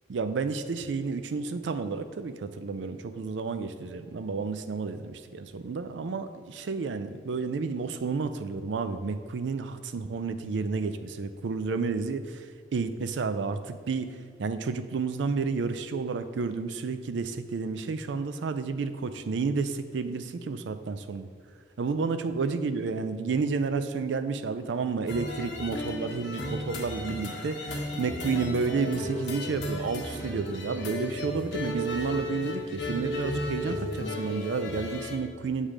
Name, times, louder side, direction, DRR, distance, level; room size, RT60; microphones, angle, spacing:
voice 1, 0.1-12.4 12.7-14.1 14.4-21.3 21.8-35.7, right 4 dB, 85° right, 10 dB, 0.4 m, -31 dB
sound 1, 25.1-35.2, left 1 dB, 80° left, 1.1 m, -34 dB
7.3 x 3.3 x 5.0 m, 2.1 s
head